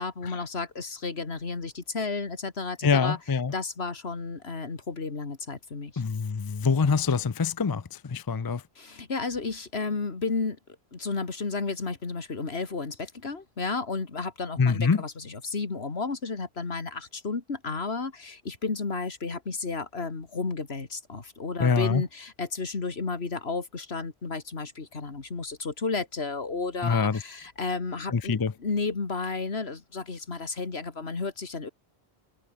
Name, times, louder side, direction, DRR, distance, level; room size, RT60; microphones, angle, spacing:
voice 1, 0.0-6.0 8.8-10.6 10.9-31.7, left 4 dB, 70° left, 2.4 m, -32 dB
voice 2, 2.8-3.5 6.0-8.6 14.6-15.0 21.6-22.0 26.8-27.2 28.1-28.5, left 5 dB, 30° left, 0.4 m, -25 dB
omnidirectional pair, 1.1 m